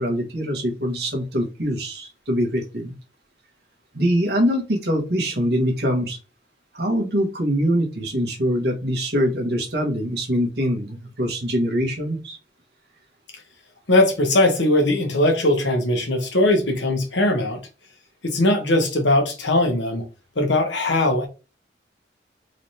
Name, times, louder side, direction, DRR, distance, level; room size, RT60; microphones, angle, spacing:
voice 1, 0.0-2.9 3.9-6.2 6.7-12.4, equal, 60° right, 1.4 m, -23 dB
voice 2, 13.9-17.6 18.2-20.0 20.4-21.3, left 1 dB, 85° left, 1.2 m, -20 dB
4.0 x 3.3 x 2.8 m
head